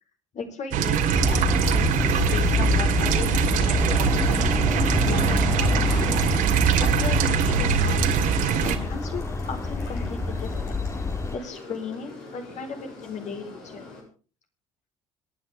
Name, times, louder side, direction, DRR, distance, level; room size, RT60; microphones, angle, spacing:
voice 1, 0.3-4.4 5.0-6.2 6.8-8.0 8.6-10.7 11.3-13.9, left 4 dB, 50° left, 5 dB, 4.5 m, -36 dB
sound 1, 0.7-8.8, right 8 dB, 60° right, 2.4 m, -23 dB
sound 2, 0.8-14.0, left 3 dB, 70° left, 7.1 m, -43 dB
sound 3, 1.1-11.3, left 3 dB, 20° left, 2.0 m, -26 dB
26.0 x 10.5 x 3.6 m, 0.38 s
figure-of-eight pair, 55°, 15 cm